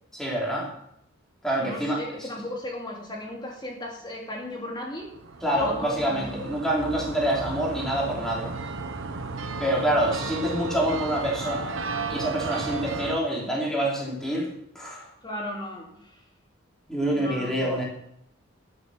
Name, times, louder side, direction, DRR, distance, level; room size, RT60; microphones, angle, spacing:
voice 1, 0.2-0.7 1.4-2.3 5.4-8.5 9.6-11.8 12.1-14.5 14.7-15.1 16.9-17.8, right 1 dB, ahead, -4 dB, 3.2 m, -26 dB
voice 2, 1.6-5.1 5.5-6.6 15.2-16.2 17.1-17.7, left 1 dB, 20° left, -1 dB, 2.7 m, -36 dB
sound 1, 5.0-13.2, right 3 dB, 80° right, 1.2 m, -34 dB
11.5 x 8.3 x 6.2 m, 0.72 s
head